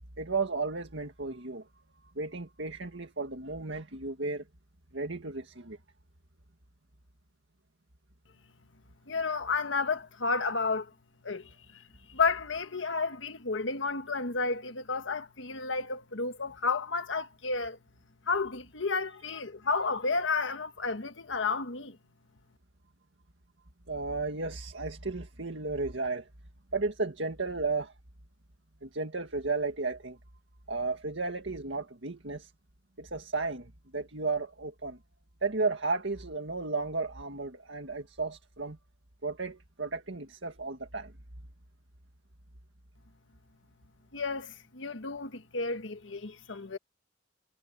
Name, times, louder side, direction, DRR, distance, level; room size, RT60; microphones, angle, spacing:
voice 1, 0.2-1.7 2.2-4.4 4.9-5.8 23.9-26.3 26.7-27.9 28.8-30.2 30.7-32.5 33.0-35.0 35.4-38.8 39.2-41.1, right 3 dB, 75° right, 1.9 m, -34 dB
voice 2, 9.1-10.9 11.2-17.8 18.3-22.0 44.1-46.8, left 4 dB, 80° left, 1.5 m, -32 dB
head